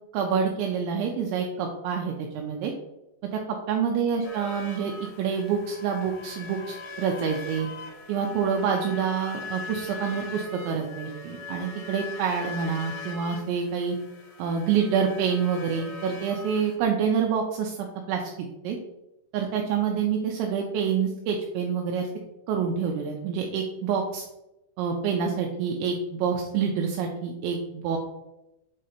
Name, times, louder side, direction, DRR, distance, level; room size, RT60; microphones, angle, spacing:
voice 1, 0.1-2.7 3.3-3.4 3.7-4.9 5.2-7.7 8.1-14.0 14.4-18.3 18.6-18.8 19.3-22.1 22.5-24.2 24.8-28.0, right 6 dB, 85° right, 1 dB, 2.7 m, -27 dB
sound 1, 4.2-16.8, left 3 dB, 90° left, 3.6 m, -41 dB
7.6 x 2.8 x 4.9 m, 0.93 s
omnidirectional pair, 5.7 m